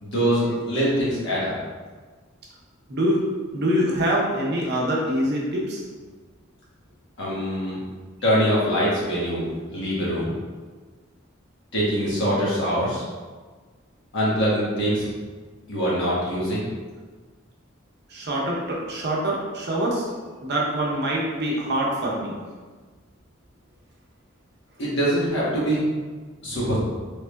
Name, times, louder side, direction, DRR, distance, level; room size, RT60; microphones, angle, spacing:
voice 1, 0.0-1.5 7.2-7.8 8.2-9.5 9.7-10.3 11.7-13.0 14.1-15.1 15.7-16.7 24.8-25.8 26.4-26.8, equal, 65° left, -7 dB, 1.3 m, -23 dB
voice 2, 2.9-3.3 3.5-5.8 18.1-20.1 20.4-22.4, right 1 dB, 55° right, -3 dB, 0.7 m, -24 dB
3.6 x 3.3 x 2.2 m, 1.4 s
head